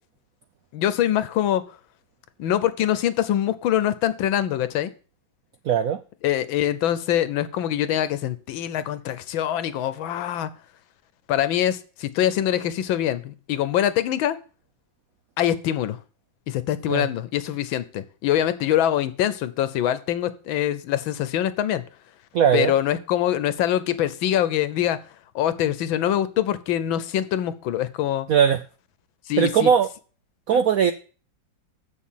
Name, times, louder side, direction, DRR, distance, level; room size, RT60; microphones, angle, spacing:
voice 1, 0.7-1.6 2.4-4.9 6.2-10.5 11.3-14.4 15.4-16.0 16.5-21.8 22.5-25.0 25.3-28.3 29.3-29.7 30.5-30.6, left 11 dB, 80° left, 14 dB, 1.5 m, -24 dB
voice 2, 5.7-6.0 16.9-17.1 22.3-22.7 28.3-28.6 29.4-29.9 30.5-30.9, right 8 dB, 75° right, 10 dB, 0.8 m, -19 dB
7.7 x 6.7 x 7.2 m, 0.37 s
omnidirectional pair, 2.2 m